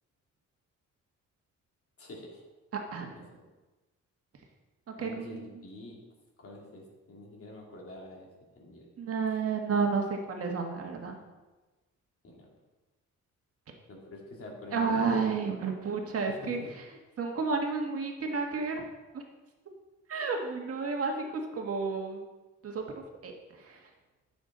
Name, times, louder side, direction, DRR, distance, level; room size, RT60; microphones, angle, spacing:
voice 1, 2.0-2.4 3.1-3.5 5.0-5.9 6.4-8.3 8.6-8.9 12.2-12.5 13.9-15.1 16.3-16.7, left 1 dB, 50° left, -1 dB, 2.7 m, -46 dB
voice 2, 2.7-3.1 4.9-5.4 9.0-11.2 14.7-16.6 17.2-18.8 19.1-19.2 20.1-22.2 22.6-22.8 23.2-23.3 23.7-23.8, right 4 dB, 50° right, 2 dB, 1.6 m, -31 dB
13.5 x 7.0 x 3.9 m, 1.2 s
cardioid pair, 125°, 30 cm